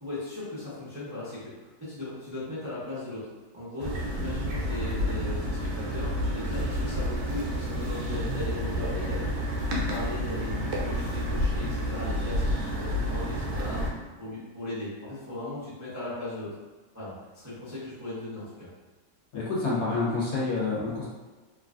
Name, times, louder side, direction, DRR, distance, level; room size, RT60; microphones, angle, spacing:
voice 1, 0.0-3.3 3.5-16.5 16.9-18.7, left 2 dB, 20° right, -12 dB, 0.4 m, -37 dB
sound 1, 3.8-13.9, equal, 70° right, 1.1 m, -30 dB
voice 2, 19.3-21.0, left 3 dB, 65° left, -7 dB, 1.3 m, -28 dB
3.0 x 2.3 x 2.4 m, 1.3 s
omnidirectional pair, 1.8 m